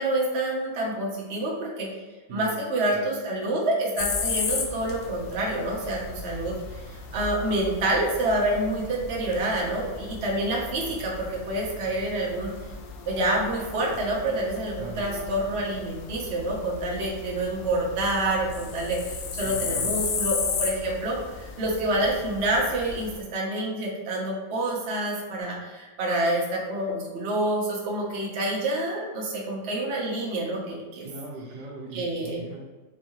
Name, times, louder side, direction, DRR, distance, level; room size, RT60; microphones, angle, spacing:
voice 1, 0.0-1.9 2.3-6.6 6.9-12.5 13.1-31.1 31.9-32.4, right 1 dB, 45° right, -3 dB, 0.9 m, -27 dB
sound 1, 4.0-23.2, left 5 dB, 80° left, 1.2 m, -35 dB
voice 2, 14.8-15.1 19.4-20.1 31.0-32.6, right 2 dB, 70° right, -3 dB, 1.4 m, -40 dB
4.5 x 2.7 x 3.0 m, 1.3 s
omnidirectional pair, 1.9 m